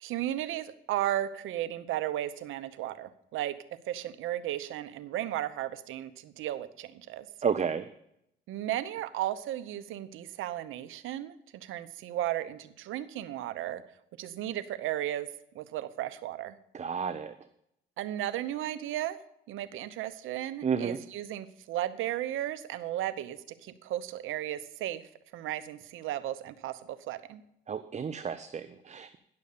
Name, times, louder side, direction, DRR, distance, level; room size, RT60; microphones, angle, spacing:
voice 1, 0.0-3.5 3.9-7.3 8.5-13.8 14.2-15.3 15.5-16.6 18.0-19.2 19.5-25.0 25.3-27.4, right 13 dB, 90° right, 13 dB, 0.9 m, -35 dB
voice 2, 7.4-7.9 16.7-17.3 20.6-21.0 27.7-29.2, right 6 dB, 35° right, 11 dB, 0.7 m, -31 dB
10.5 x 6.9 x 6.7 m, 0.77 s
cardioid pair, 90°, 20 cm